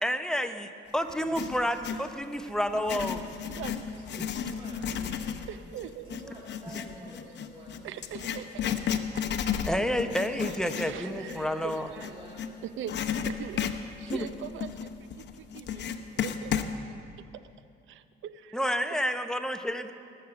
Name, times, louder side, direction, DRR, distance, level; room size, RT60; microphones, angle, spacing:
voice 1, 0.0-3.2 9.7-11.9 14.1-14.3 18.5-19.9, equal, 5° left, 8 dB, 0.8 m, -30 dB
Writing, 1.1-2.1 2.7-12.5 12.9-16.7, left 8 dB, 60° left, 0.8 m, -33 dB
voice 2, 2.7-3.0 3.4-6.1 7.8-10.0 10.3-12.1 12.6-13.0 13.2-13.7 14.0-15.9 16.1-16.7 17.3-17.4 17.9-18.8, right 10 dB, 75° right, 13 dB, 0.6 m, -43 dB
voice 3, 3.7-5.4 6.0-8.3 10.5-12.5, right 1 dB, 25° right, -4 dB, 2.1 m, -48 dB
20.0 x 6.9 x 6.9 m, 2.4 s
cardioid pair, 90°, 20 cm